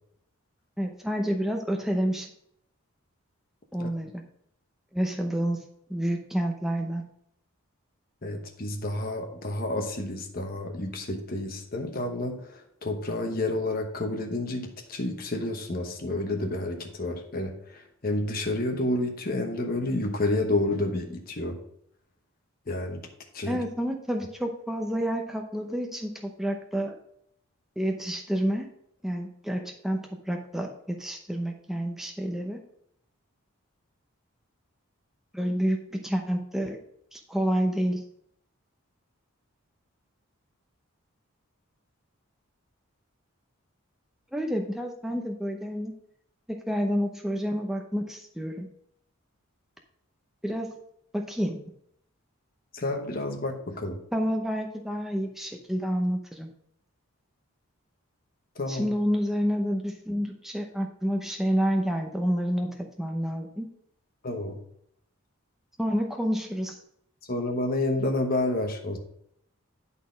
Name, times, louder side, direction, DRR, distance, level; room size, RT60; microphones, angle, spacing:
voice 1, 0.8-2.3 3.7-4.2 4.9-5.6 5.9-7.0 23.5-27.0 27.8-28.7 29.0-32.6 35.3-36.8 37.1-38.0 44.3-45.9 46.5-48.7 50.4-50.7 51.1-51.6 54.1-56.5 58.7-63.7 65.8-66.8, equal, ahead, 2 dB, 0.7 m, -29 dB
voice 2, 8.2-21.6 22.7-23.1 23.3-23.6 52.7-54.0 58.5-58.9 64.2-64.6 67.3-69.0, left 2 dB, 40° left, 4 dB, 1.0 m, -30 dB
11.0 x 4.2 x 5.0 m, 0.70 s
head